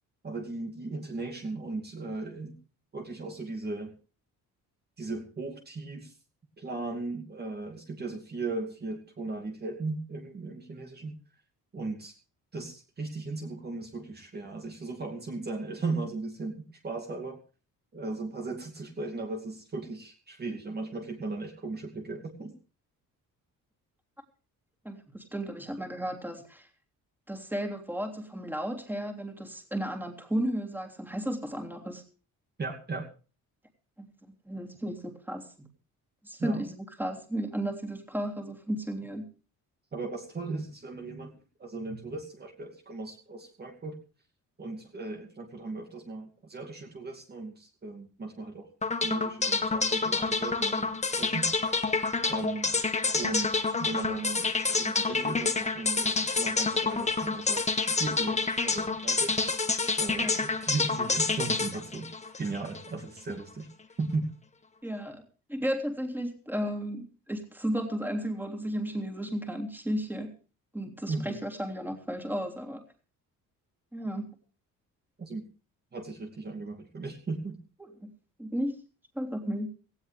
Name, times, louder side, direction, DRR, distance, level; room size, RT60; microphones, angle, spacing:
voice 1, 0.2-2.6 2.9-3.9 5.0-6.2 6.6-11.1 11.7-12.1 12.5-17.4 17.9-22.6 32.6-33.1 36.4-36.6 39.9-41.3 41.6-44.0 44.6-48.7 49.0-50.9 51.2-51.5 52.3-52.7 53.1-54.5 54.7-59.4 60.0-62.1 62.4-63.7 64.0-64.3 71.1-71.4 75.2-75.5 75.9-77.6, right 3 dB, 30° right, 3 dB, 2.5 m, -37 dB
voice 2, 24.8-26.7 27.3-32.0 34.0-34.1 34.5-35.7 36.2-39.3 60.1-60.3 64.8-65.2 65.5-70.3 70.7-72.8 73.9-74.2 78.0-78.1 78.4-78.8 79.1-79.7, equal, 5° right, 4 dB, 3.3 m, -34 dB
sound 1, 48.8-62.9, left 4 dB, 20° left, 1.9 m, -28 dB
18.0 x 16.0 x 3.4 m, 0.36 s
cardioid pair, 130°, 33 cm